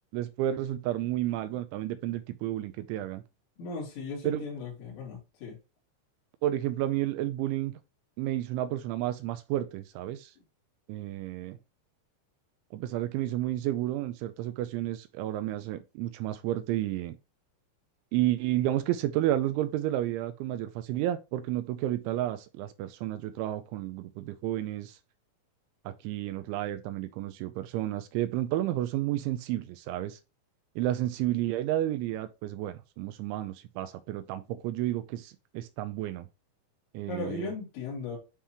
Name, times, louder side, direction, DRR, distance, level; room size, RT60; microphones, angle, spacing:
voice 1, 0.1-3.2 4.2-4.4 6.4-7.7 8.2-10.3 10.9-11.6 12.7-17.2 18.1-25.0 25.9-30.2 30.8-36.3 36.9-37.5, right 13 dB, 85° right, 2.8 m, -31 dB
voice 2, 3.6-5.6 37.1-38.2, left 4 dB, 65° left, 5.0 m, -37 dB
9.8 x 3.7 x 2.9 m
omnidirectional pair, 5.9 m